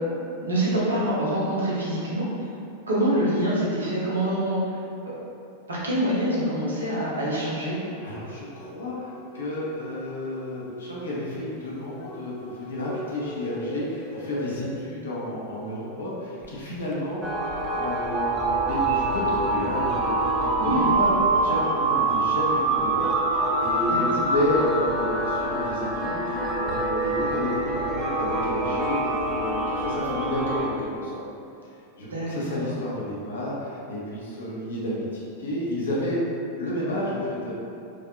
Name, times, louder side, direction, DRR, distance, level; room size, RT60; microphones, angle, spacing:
voice 1, 0.4-2.3 2.9-4.6 5.0-5.1 5.7-7.8 20.6-20.9 23.9-24.0 32.1-32.7, right 1 dB, 70° right, -6 dB, 1.0 m, -25 dB
sound 1, 7.7-14.7, left 1 dB, 45° left, 0.7 m, -41 dB
voice 2, 8.0-17.2 17.6-18.4 18.6-21.2 21.4-23.0 23.3-31.2 32.0-35.1 35.4-36.2 36.6-37.5, left 1 dB, 70° left, -7 dB, 1.0 m, -31 dB
sound 2, 16.4-16.5 16.9-17.5 17.8-21.7, left 1 dB, 15° left, 0.3 m, -42 dB
sound 3, 17.2-30.7, right 2 dB, 20° right, 0.7 m, -25 dB
4.8 x 2.6 x 2.7 m, 2.7 s
figure-of-eight pair, 90°, 0 cm